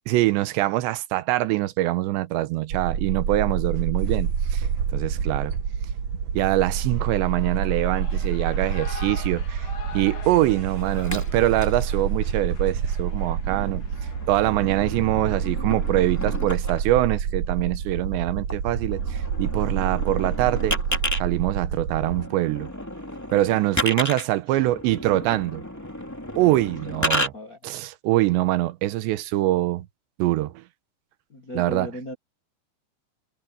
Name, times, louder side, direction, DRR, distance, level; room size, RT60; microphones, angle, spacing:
voice 1, 0.1-4.7 4.9-5.5 6.3-9.7 9.9-13.8 14.3-20.8 21.2-22.7 23.3-25.6 26.4-27.3 27.6-29.9 30.2-30.6 31.5-31.9, right 16 dB, 85° right, 3.2 m, -24 dB
sound 1, 2.7-22.3, right 7 dB, 60° right, 2.0 m, -28 dB
Shout / Cheering, 6.7-14.4, left 6 dB, 50° left, 3.9 m, -44 dB
sound 2, 10.7-11.9 12.5-12.7 13.7-16.8 18.5-18.6 18.9-21.2 21.9-27.3, left 1 dB, 5° left, 1.8 m, -32 dB
voice 2, 26.9-27.6 31.3-32.1, left 1 dB, 90° left, 0.8 m, -38 dB
omnidirectional pair, 5.0 m